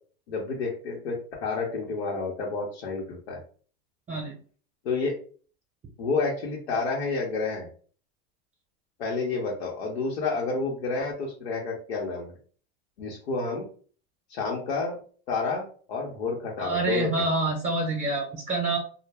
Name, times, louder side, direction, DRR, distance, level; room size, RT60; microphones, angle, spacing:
voice 1, 0.3-3.4 4.8-5.2 6.0-7.7 9.0-12.3 13.0-13.7 14.3-15.0 15.3-17.3, left 4 dB, 90° left, -2 dB, 0.8 m, -30 dB
voice 2, 16.6-18.8, right 2 dB, 25° right, 0 dB, 0.7 m, -27 dB
2.1 x 2.0 x 3.3 m, 0.43 s
supercardioid pair, 115°, 31 cm